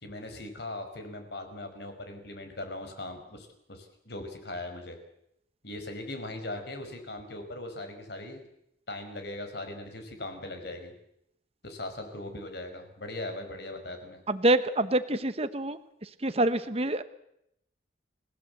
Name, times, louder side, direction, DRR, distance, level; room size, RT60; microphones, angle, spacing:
voice 1, 0.0-5.0 5.6-8.4 8.9-10.9 11.6-14.2, left 2 dB, 60° left, 6 dB, 5.1 m, -39 dB
voice 2, 14.3-17.0, right 1 dB, 30° right, 11 dB, 1.1 m, -27 dB
30.0 x 17.0 x 7.9 m, 0.78 s
head